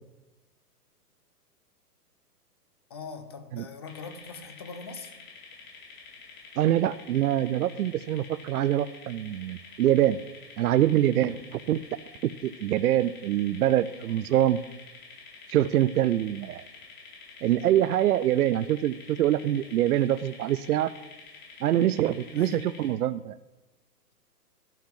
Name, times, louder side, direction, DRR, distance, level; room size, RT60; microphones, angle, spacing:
voice 1, 2.9-5.2 22.4-22.7, left 5 dB, 20° left, 8 dB, 0.4 m, -41 dB
sound 1, 3.9-22.9, left 5 dB, 55° left, 4.6 m, -48 dB
voice 2, 6.6-10.2 10.6-11.8 12.2-14.6 15.5-16.7 17.4-20.9 21.6-23.4, right 12 dB, 70° right, 13 dB, 0.5 m, -24 dB
12.0 x 5.8 x 7.4 m, 1.1 s
hypercardioid pair, 125°, 47 cm